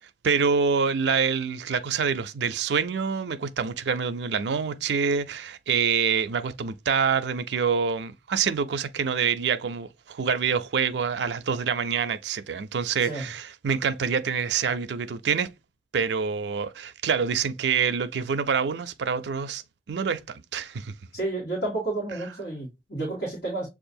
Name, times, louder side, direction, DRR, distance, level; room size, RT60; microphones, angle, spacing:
voice 1, 0.2-15.5 15.9-19.6 19.9-20.9, right 6 dB, 80° right, 0.4 m, -26 dB
voice 2, 21.1-23.7, right 2 dB, 60° left, 1.7 m, -31 dB
6.7 x 2.5 x 2.6 m
head